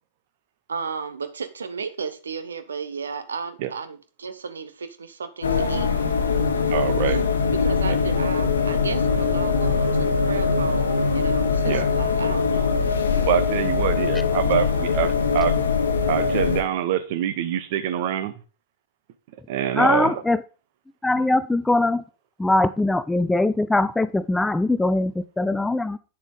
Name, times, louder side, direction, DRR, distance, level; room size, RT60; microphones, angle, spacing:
voice 1, 0.7-5.9 7.1-12.7 14.6-14.8, right 5 dB, 70° right, 0.8 m, -34 dB
sound 1, 5.4-16.6, left 5 dB, 75° left, 1.1 m, -22 dB
voice 2, 6.7-7.2 7.9-8.0 11.6-11.9 13.3-15.7 16.1-18.3 19.5-20.2 21.2-21.3, right 10 dB, 50° right, 1.1 m, -25 dB
voice 3, 19.8-20.4 21.0-22.0 22.4-26.0, left 2 dB, 5° left, 0.4 m, -21 dB
9.1 x 7.1 x 4.0 m
figure-of-eight pair, 90°, 0 cm